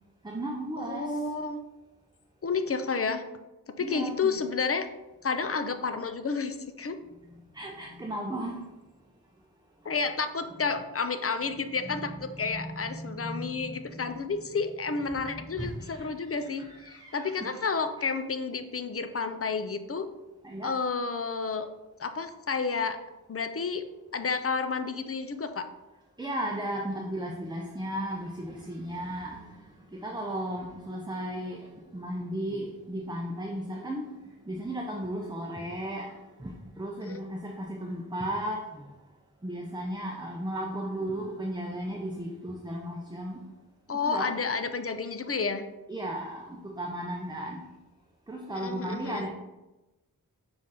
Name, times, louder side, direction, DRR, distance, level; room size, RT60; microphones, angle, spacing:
voice 1, 0.2-1.3 3.8-4.4 7.5-8.6 9.8-10.0 11.8-12.2 12.5-14.1 15.3-17.6 18.0-18.1 20.4-20.7 26.2-38.9 39.4-43.4 43.9-44.4 45.9-47.6 48.3-49.3, right 1 dB, 10° right, 0 dB, 0.5 m, -35 dB
voice 2, 0.8-1.6 2.4-3.2 3.7-4.9 5.2-7.0 9.8-20.1 20.6-21.7 22.0-23.0 23.3-23.8 24.1-25.6 37.0-37.2 43.9-45.7 48.5-49.3, left 4 dB, 40° left, 9 dB, 0.4 m, -31 dB
5.7 x 2.6 x 3.6 m, 1.0 s
wide cardioid pair, 45°, 37 cm